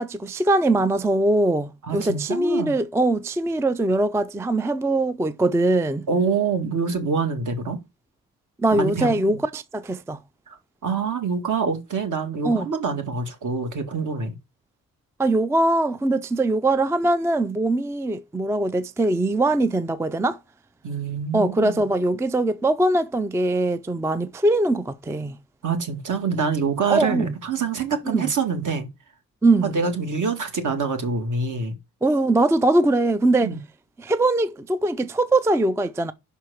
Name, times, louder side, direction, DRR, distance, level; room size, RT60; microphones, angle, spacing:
voice 1, 0.0-6.1 8.6-10.2 12.4-12.7 15.2-20.4 21.3-25.4 26.9-27.3 28.1-28.3 29.4-29.8 32.0-33.5 34.0-36.1, right 2 dB, 10° right, 0.4 m, -22 dB
voice 2, 1.8-2.7 6.1-7.8 8.7-9.4 10.5-14.3 20.8-21.8 25.6-28.9 29.6-31.7 33.4-33.6, right 5 dB, 55° right, 1.9 m, -26 dB
5.7 x 4.6 x 6.2 m
cardioid pair, 105°, 36 cm